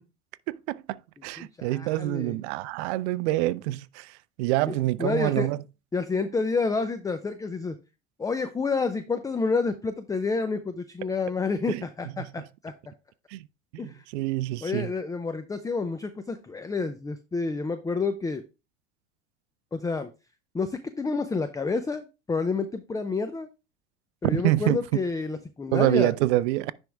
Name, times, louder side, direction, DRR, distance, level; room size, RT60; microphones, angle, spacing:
voice 1, 0.5-4.1 4.4-5.6 11.7-11.8 13.3-13.4 13.7-14.9 24.2-24.8 25.7-26.7, right 17 dB, 65° right, 0.5 m, -26 dB
voice 2, 1.4-2.4 4.6-5.5 5.9-7.8 8.2-12.7 13.8-14.0 14.6-18.4 19.7-20.1 20.5-23.5 24.2-26.1, left 4 dB, 10° left, 0.5 m, -29 dB
10.0 x 3.6 x 3.4 m
hypercardioid pair, 90°, 36 cm